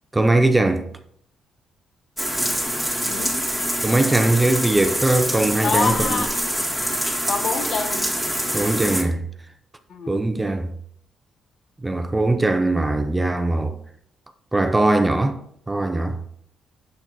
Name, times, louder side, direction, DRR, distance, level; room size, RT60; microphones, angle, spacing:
voice 1, 0.1-0.9 3.8-6.2 8.5-9.2 10.1-10.7 11.8-13.7 14.5-15.4 15.7-16.2, right 2 dB, 15° right, 0.6 m, -20 dB
sound 1, 2.2-9.0, equal, 5° left, 1.8 m, -25 dB
voice 2, 3.1-3.4 5.6-6.3 7.3-8.1 9.9-10.1, left 5 dB, 60° left, 1.1 m, -25 dB
7.7 x 6.8 x 3.0 m
cardioid pair, 90°, 0 cm